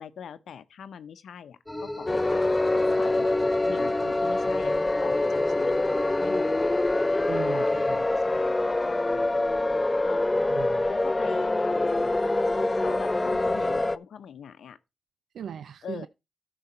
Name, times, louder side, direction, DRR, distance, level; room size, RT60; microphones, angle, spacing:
voice 1, 0.0-3.3 3.6-5.8 6.2-6.5 7.1-9.4 10.0-10.4 10.9-14.8 15.8-16.1, left 8 dB, 85° left, 0.8 m, -43 dB
sound 1, 1.7-8.0, left 1 dB, 5° left, 1.4 m, -35 dB
sound 2, 2.1-14.0, left 2 dB, 20° left, 0.5 m, -25 dB
voice 2, 7.3-8.0 10.3-10.9 15.3-16.1, right 8 dB, 80° right, 0.4 m, -38 dB
13.5 x 5.6 x 4.3 m
cardioid pair, 75°, 0 cm